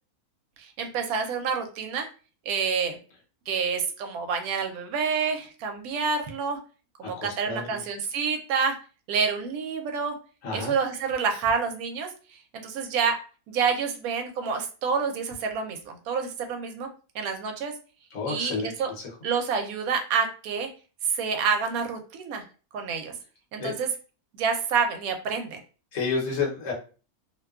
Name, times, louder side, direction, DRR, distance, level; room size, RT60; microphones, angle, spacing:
voice 1, 0.6-2.1 2.5-3.0 3.5-6.6 7.0-8.7 9.1-10.2 10.5-13.2 13.5-17.7 18.3-18.9 19.2-20.7 21.0-22.4 22.7-23.2 23.5-23.9 24.3-25.6, right 5 dB, 75° right, 4 dB, 1.0 m, -28 dB
voice 2, 7.0-7.8 10.4-10.8 18.1-19.0 23.6-23.7 25.9-26.7, left 4 dB, 60° left, -2 dB, 1.2 m, -30 dB
2.8 x 2.2 x 2.3 m, 0.36 s
omnidirectional pair, 1.6 m